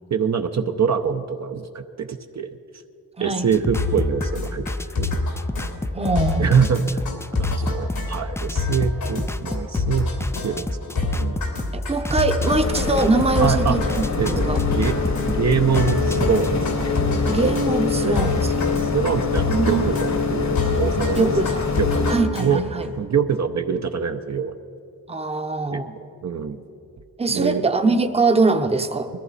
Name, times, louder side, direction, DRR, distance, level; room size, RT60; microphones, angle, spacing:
voice 1, 0.1-2.5 3.2-4.7 5.0-5.3 6.4-6.8 7.4-10.1 10.4-11.5 13.4-13.8 14.2-14.9 15.3-16.7 17.0-17.1 18.0-18.3 18.8-21.3 21.8-22.6 23.0-24.5 25.7-25.8 26.2-26.6 27.3-27.6, right 6 dB, 50° right, 6 dB, 0.8 m, -24 dB
voice 2, 3.2-3.5 5.9-6.5 11.7-13.9 14.2-14.6 17.3-18.5 19.5-19.8 21.2-21.7 22.1-22.9 25.1-25.9 27.2-29.1, right 3 dB, 15° right, 7 dB, 0.8 m, -22 dB
sound 1, 3.5-16.6, left 1 dB, 10° left, 0.4 m, -31 dB
sound 2, 3.8-22.9, left 3 dB, 85° left, 2.7 m, -27 dB
sound 3, 12.4-22.2, left 4 dB, 50° left, 1.3 m, -24 dB
21.0 x 14.0 x 4.2 m, 2.5 s
cardioid pair, 70°, 35 cm